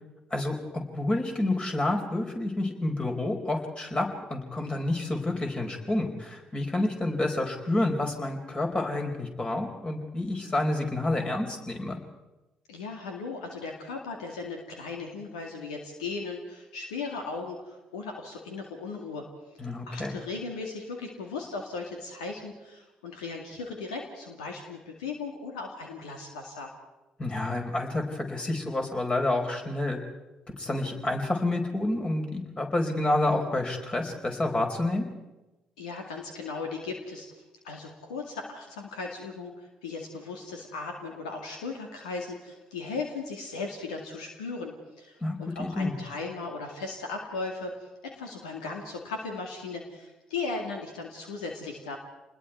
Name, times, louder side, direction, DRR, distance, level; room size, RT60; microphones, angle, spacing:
voice 1, 0.3-12.0 19.6-20.2 27.2-30.0 30.6-35.1 45.2-45.9, left 2 dB, 30° left, 2 dB, 4.6 m, -29 dB
voice 2, 12.7-19.2 19.9-26.7 35.8-37.3 37.6-47.7 48.1-52.0, left 4 dB, 80° left, 2 dB, 2.2 m, -37 dB
28.0 x 20.5 x 4.7 m, 1.0 s
hypercardioid pair, 50°, 4 cm